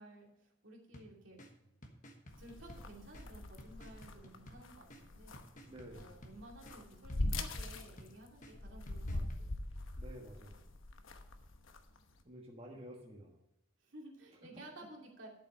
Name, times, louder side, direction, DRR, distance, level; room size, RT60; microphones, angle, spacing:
voice 1, 0.0-1.4 2.4-5.4 5.9-9.5 13.8-15.3, right 1 dB, 75° right, -1 dB, 2.6 m, -54 dB
sound 1, 0.9-9.4, equal, 40° left, 1.3 m, -57 dB
sound 2, 2.3-12.1, left 2 dB, 90° left, 1.0 m, -42 dB
voice 2, 5.6-6.2 10.0-10.7 12.2-13.4, equal, 30° right, 0 dB, 1.3 m, -51 dB
11.5 x 7.4 x 5.5 m, 0.85 s
head